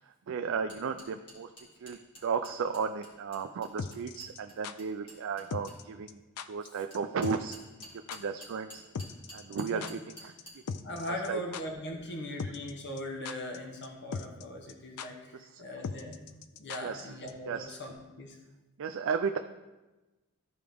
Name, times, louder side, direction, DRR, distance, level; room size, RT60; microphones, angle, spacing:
voice 1, 0.3-1.5 1.8-6.2 6.5-7.6 7.9-8.8 9.3-10.3 11.1-11.4 15.4-15.6 16.8-17.1 17.5-17.8 18.8-19.4, right 6 dB, 60° right, 7 dB, 0.4 m, -34 dB
sound 1, 0.7-5.8 6.9-10.5, equal, 25° left, 2.4 m, -50 dB
sound 2, 3.8-4.7 5.5-5.8 6.1-6.2 6.4-6.7 6.9-7.0 7.2-7.5 7.8-7.9 8.1-8.2 8.9-10.1 10.4-10.5 10.7-11.3 11.5-11.6 12.4-12.7 13.0-13.6 13.8-13.9 14.1-14.4 14.7-14.8 15.0-15.1 15.8-17.0 17.3-17.4, left 5 dB, 85° left, 0.4 m, -38 dB
voice 2, 10.8-16.2 16.6-18.4, left 1 dB, 55° left, 2 dB, 1.1 m, -40 dB
13.5 x 4.8 x 3.5 m, 1.1 s
head